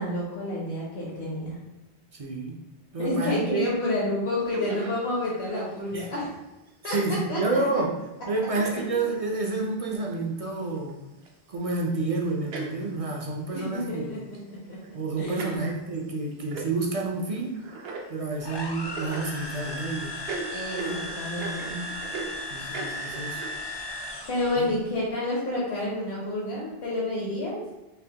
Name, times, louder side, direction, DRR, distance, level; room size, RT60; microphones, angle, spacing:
voice 1, 0.0-1.6 3.0-6.3 6.8-7.4 7.7-7.8 8.8-8.9 13.5-15.5 20.5-21.9 24.2-27.6, left 1 dB, 75° left, -5 dB, 1.2 m, -30 dB
voice 2, 2.1-2.6 2.9-3.7 5.9-6.1 6.8-8.0 8.3-11.0 11.5-14.1 14.9-17.6 18.1-20.2 20.9-21.0 22.5-23.4 24.6-24.8, right 3 dB, 45° right, 0 dB, 0.5 m, -29 dB
sound 1, 4.5-5.0 5.3-5.7 6.2-6.3 6.8-7.1 7.7-7.8 8.3-8.4 8.5-9.0 9.7-9.8 10.8-10.9 11.3-11.4 12.3-12.8 13.3-13.8 14.3-14.4 14.7-15.1 15.4-15.6 15.9-16.1 16.3-16.7 17.1-17.2 17.4-18.1 18.6-19.8 20.3-22.4 22.7-23.8, right 3 dB, 70° right, 0.8 m, -38 dB
sound 2, 18.4-24.7, left 1 dB, 40° left, 0.3 m, -36 dB
5.4 x 2.1 x 2.8 m, 0.99 s
omnidirectional pair, 1.1 m